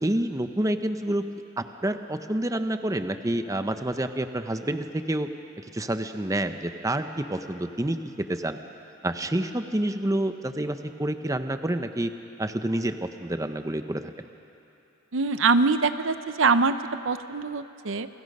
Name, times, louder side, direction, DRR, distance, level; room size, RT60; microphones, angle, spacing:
voice 1, 0.0-1.2 1.6-5.3 5.6-8.6 9.0-12.1 12.4-14.0, right 1 dB, 15° right, 8 dB, 0.8 m, -28 dB
voice 2, 15.1-16.7 17.0-18.1, right 4 dB, 75° right, 11 dB, 0.7 m, -23 dB
29.0 x 22.5 x 5.4 m, 2.8 s
head